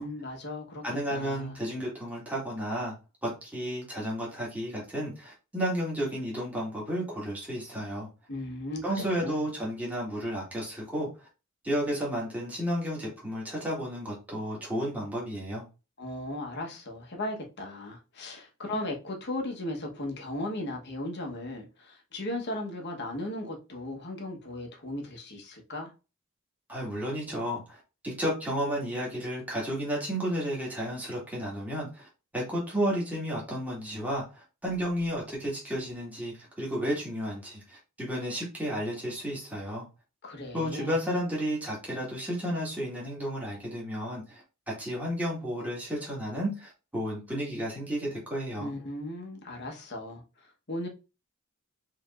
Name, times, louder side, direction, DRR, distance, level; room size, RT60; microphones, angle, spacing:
voice 1, 0.0-1.6 8.3-9.4 16.0-25.9 40.2-40.9 48.6-50.9, left 1 dB, 55° left, 1.2 m, -37 dB
voice 2, 0.8-3.0 3.2-8.1 8.8-11.3 11.6-15.6 26.7-39.8 40.5-44.4 44.8-48.7, equal, 5° right, 1.7 m, -32 dB
4.7 x 3.4 x 2.5 m
head